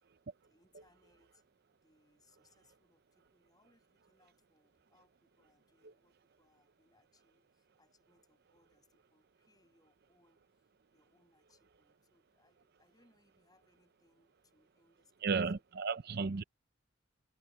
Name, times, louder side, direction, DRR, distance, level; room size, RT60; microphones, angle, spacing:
voice 1, 0.4-1.4 1.8-15.6, left 2 dB, 20° left, 7.3 m, -72 dB
voice 2, 15.2-16.4, right 5 dB, 55° right, 0.6 m, -34 dB
head